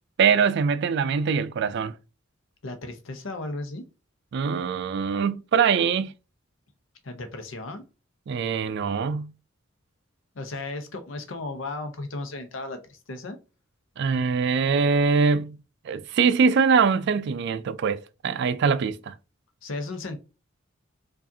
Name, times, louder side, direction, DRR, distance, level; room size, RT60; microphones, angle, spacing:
voice 1, 0.2-1.9 4.3-6.1 8.3-9.3 14.0-15.6 15.9-19.1, right 5 dB, 60° right, 0.3 m, -23 dB
voice 2, 2.6-3.8 7.0-7.8 10.3-13.4 19.6-20.2, left 2 dB, 70° left, 0.8 m, -35 dB
4.8 x 2.5 x 2.7 m
head